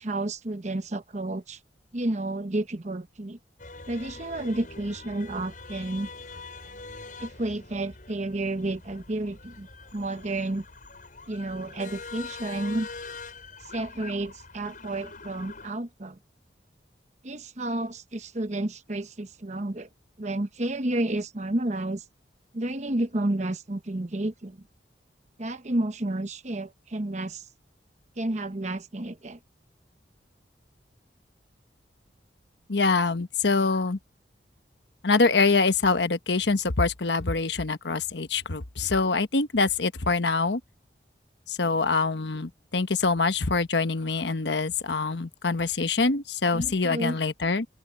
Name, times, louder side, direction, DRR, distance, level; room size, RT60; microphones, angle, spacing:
voice 1, 0.0-1.6 1.9-3.4 3.9-6.1 7.2-9.7 9.9-10.6 11.3-12.9 13.7-16.2 17.2-19.9 20.2-22.0 22.5-24.6 25.4-27.4 28.2-29.4 46.5-47.2, right 1 dB, 40° right, 1.0 m, -31 dB
sound 1, 3.6-15.7, left 3 dB, 50° left, 7.0 m, -44 dB
voice 2, 32.7-34.0 35.0-40.6 41.5-47.7, left 4 dB, 75° left, 1.1 m, -25 dB
open air
head